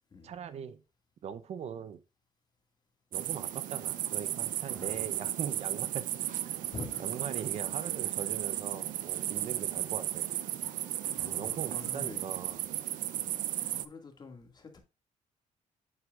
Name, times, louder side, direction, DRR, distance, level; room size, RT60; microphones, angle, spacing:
voice 1, 0.2-0.8 1.2-2.0 3.1-6.0 6.5-6.7 7.0-10.3 11.2-12.7, right 8 dB, 55° right, 0.8 m, -41 dB
sound 1, 3.1-13.8, right 13 dB, 85° right, 0.7 m, -34 dB
voice 2, 4.7-5.1 6.7-7.2 11.1-12.3 13.3-14.8, left 3 dB, 30° left, 2.2 m, -46 dB
8.0 x 8.0 x 2.5 m
cardioid pair, 135°, 13 cm